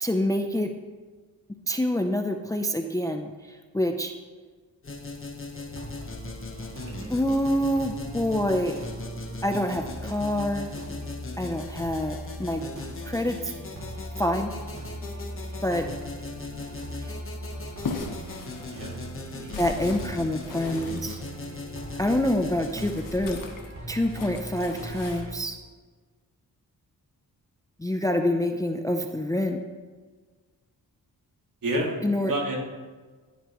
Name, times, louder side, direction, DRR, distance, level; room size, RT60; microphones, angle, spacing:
voice 1, 0.0-0.7 1.7-4.1 7.1-8.7 9.4-10.7 11.4-12.6 13.0-13.5 14.2-14.5 15.6-15.9 17.0-17.1 19.6-21.2 22.0-23.4 23.9-25.6 27.8-29.6 32.0-32.3, left 1 dB, 10° left, 5 dB, 0.5 m, -26 dB
sound 1, 4.8-23.0, left 3 dB, 35° left, 1.1 m, -40 dB
sound 2, 5.5-25.4, right 1 dB, 45° right, 2.8 m, -40 dB
sound 3, 17.5-22.3 22.7-25.3, left 4 dB, 60° left, 1.3 m, -39 dB
voice 2, 19.3-19.8 31.6-32.6, right 1 dB, 60° right, -2 dB, 2.4 m, -31 dB
14.5 x 10.0 x 3.0 m, 1.4 s
wide cardioid pair, 145°, 37 cm